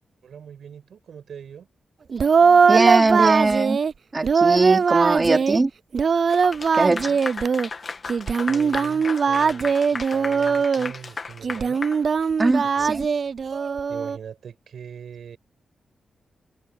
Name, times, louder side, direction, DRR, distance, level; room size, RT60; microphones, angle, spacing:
voice 1, 0.2-1.7 7.1-7.3 8.5-11.8 12.6-13.3 13.9-15.4, right 7 dB, 80° right, 6.3 m, -41 dB
Singing, 2.1-3.9 4.2-5.6 5.9-7.7 8.1-10.9 11.4-14.2, right 5 dB, 60° right, 0.3 m, -20 dB
voice 2, 2.7-3.8 4.1-5.7 6.8-7.1 12.4-13.1, right 2 dB, 30° right, 3.4 m, -20 dB
Clapping / Applause, 6.3-12.6, left 4 dB, 50° left, 2.0 m, -35 dB
cardioid pair, 75°, 0 cm